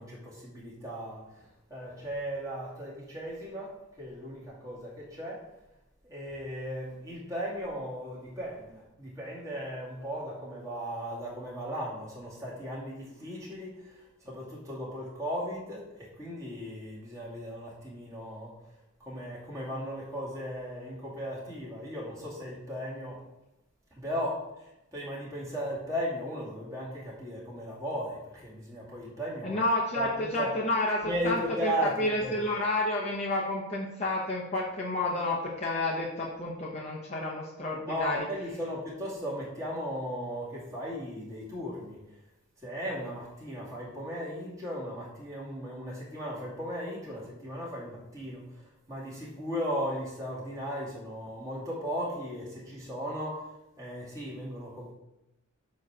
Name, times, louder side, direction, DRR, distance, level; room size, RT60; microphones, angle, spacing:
voice 1, 0.0-5.4 6.0-18.5 19.0-23.2 24.0-29.6 29.9-30.5 31.0-32.3 37.8-42.0 42.6-48.4 48.9-53.5 53.8-54.9, equal, 15° right, -6 dB, 2.4 m, -36 dB
voice 2, 29.4-31.7 32.0-38.2, left 2 dB, 30° left, -5 dB, 0.9 m, -30 dB
9.0 x 3.2 x 6.2 m, 0.93 s
head